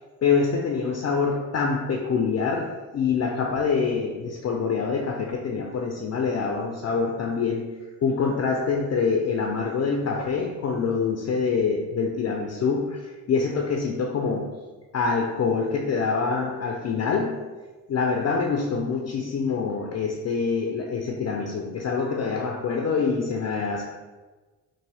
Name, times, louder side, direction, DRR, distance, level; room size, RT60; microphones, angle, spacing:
voice 1, 0.2-7.7 8.0-14.6 14.9-17.4 17.9-23.8, left 5 dB, 35° left, 1 dB, 0.5 m, -25 dB
3.5 x 2.5 x 3.3 m, 1.3 s
hypercardioid pair, 45°, 43 cm